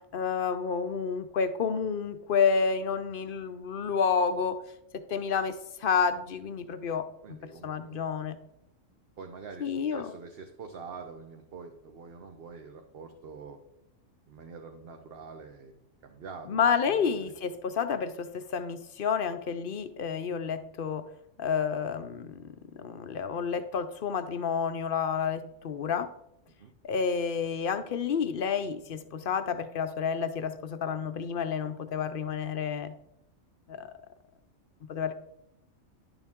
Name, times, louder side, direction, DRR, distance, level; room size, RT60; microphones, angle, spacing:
voice 1, 0.1-4.6 5.1-7.4 7.6-8.4 9.6-10.1 16.5-21.0 21.4-26.1 26.8-32.9 33.7-33.9 34.9-35.1, left 6 dB, 55° left, 11 dB, 0.7 m, -30 dB
voice 2, 7.2-8.3 9.2-13.6 14.3-15.7 16.0-17.3 26.5-26.7, right 5 dB, 50° right, 4 dB, 0.9 m, -46 dB
10.5 x 7.0 x 3.6 m, 0.82 s
omnidirectional pair, 1.4 m